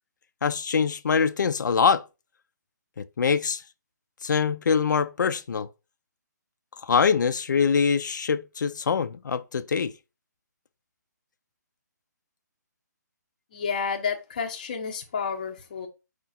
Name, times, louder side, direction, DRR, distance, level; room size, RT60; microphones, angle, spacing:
voice 1, 0.4-2.0 3.0-3.6 4.2-5.7 6.8-9.9, left 6 dB, 85° left, 0.4 m, -24 dB
voice 2, 13.5-15.9, left 6 dB, 25° left, 0.6 m, -30 dB
4.9 x 2.4 x 4.0 m
hypercardioid pair, 180°, 10 cm